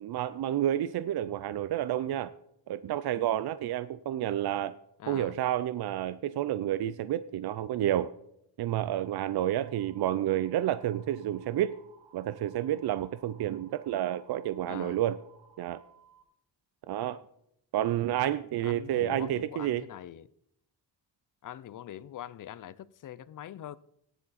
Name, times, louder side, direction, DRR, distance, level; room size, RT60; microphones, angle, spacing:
voice 1, 0.0-2.3 2.7-4.7 5.1-8.1 8.6-11.7 12.1-15.2 15.6-15.8 16.9-17.2 17.7-19.8, right 12 dB, 65° right, 0.5 m, -30 dB
voice 2, 5.0-5.4 14.7-15.0 18.6-20.3 21.4-23.8, left 11 dB, 50° left, 0.5 m, -43 dB
sound 1, 8.9-16.2, right 6 dB, 85° right, 1.9 m, -60 dB
16.5 x 10.0 x 4.1 m
wide cardioid pair, 150°, 42 cm